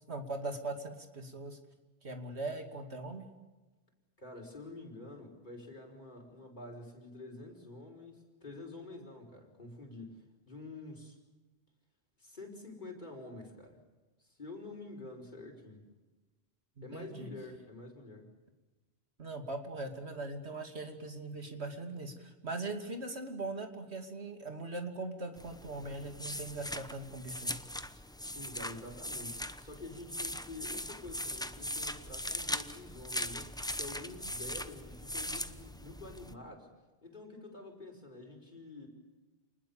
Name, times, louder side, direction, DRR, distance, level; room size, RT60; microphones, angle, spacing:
voice 1, 0.1-1.6 2.0-3.3 16.8-17.3 19.2-27.6, right 2 dB, 70° right, 5 dB, 3.0 m, -40 dB
voice 2, 4.2-11.2 12.2-13.8 14.2-15.8 16.8-18.3 28.2-36.7 37.0-38.9, left 2 dB, 45° left, 1 dB, 5.4 m, -48 dB
sound 1, 25.4-36.3, left 1 dB, 5° left, 0.8 m, -40 dB
29.0 x 20.5 x 7.2 m, 1.2 s
omnidirectional pair, 1.1 m